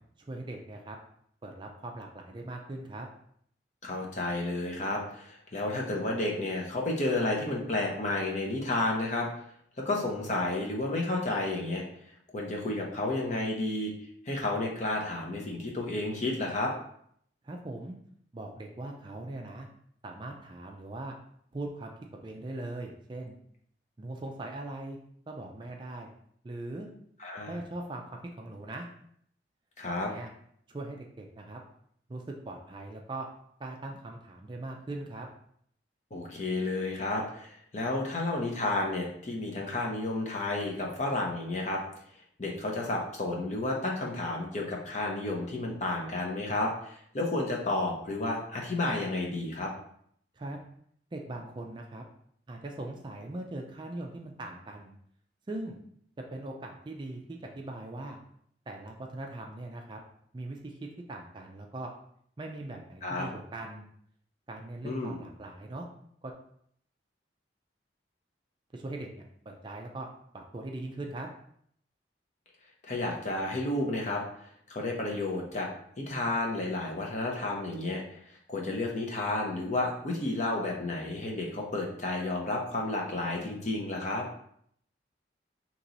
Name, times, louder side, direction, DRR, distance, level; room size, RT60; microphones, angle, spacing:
voice 1, 0.2-1.0 1.4-3.1 17.4-18.0 18.3-19.7 20.0-21.1 21.5-21.9 22.2-23.4 24.0-25.0 25.3-26.1 26.4-26.9 27.5-28.9 29.9-30.3 30.7-31.6 32.1-33.3 33.6-35.3 50.3-50.6 51.1-52.0 52.5-54.9 55.5-55.8 56.3-58.2 58.7-60.0 60.3-60.7 61.1-61.9 62.4-63.8 64.5-65.9 66.2-66.3 68.7-69.1 69.5-70.1 70.3-71.3, right 2 dB, 25° right, 1 dB, 0.4 m, -40 dB
voice 2, 3.8-9.3 9.8-11.8 12.3-13.9 14.3-16.7 27.2-27.6 29.8-30.1 36.1-41.8 42.4-49.7 63.0-63.3 64.8-65.2 72.8-75.7 76.0-78.2 78.5-84.3, left 2 dB, 40° left, -1 dB, 0.7 m, -31 dB
3.0 x 2.9 x 3.8 m, 0.67 s
head